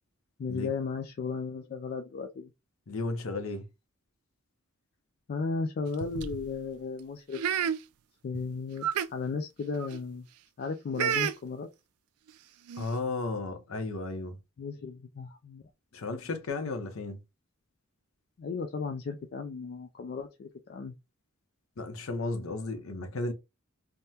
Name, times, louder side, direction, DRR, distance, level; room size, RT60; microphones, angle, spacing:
voice 1, 0.4-2.5 5.3-7.4 8.2-10.3 10.6-11.7 14.6-15.6 18.4-20.9, left 4 dB, 45° left, 0.3 m, -35 dB
voice 2, 2.9-3.7 12.8-14.4 15.9-17.2 21.8-23.3, left 3 dB, 70° left, 0.7 m, -34 dB
sound 1, 5.9-6.5 7.3-7.8 8.3-8.4 8.8-9.1 9.7-10.0 10.9-11.3 12.3-12.4 12.7-12.9, right 9 dB, 85° right, 0.3 m, -30 dB
3.5 x 2.1 x 2.7 m
head